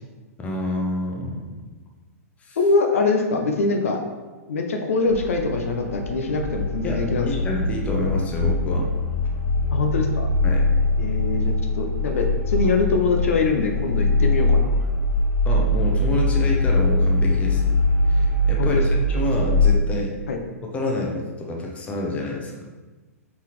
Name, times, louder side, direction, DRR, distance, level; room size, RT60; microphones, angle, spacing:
voice 1, 0.4-1.5 2.4-2.6 6.8-8.9 10.4-10.7 15.5-17.8 18.1-20.1 20.7-22.6, left 2 dB, 15° left, -1 dB, 0.7 m, -28 dB
voice 2, 2.6-4.0 4.5-7.3 9.7-10.3 11.0-14.7 18.6-18.8 20.3-20.4, left 3 dB, 60° left, 3 dB, 0.6 m, -23 dB
sound 1, 5.1-19.8, left 2 dB, 80° left, 1.2 m, -22 dB
4.0 x 3.9 x 3.2 m, 1.2 s
figure-of-eight pair, 105°, 8 cm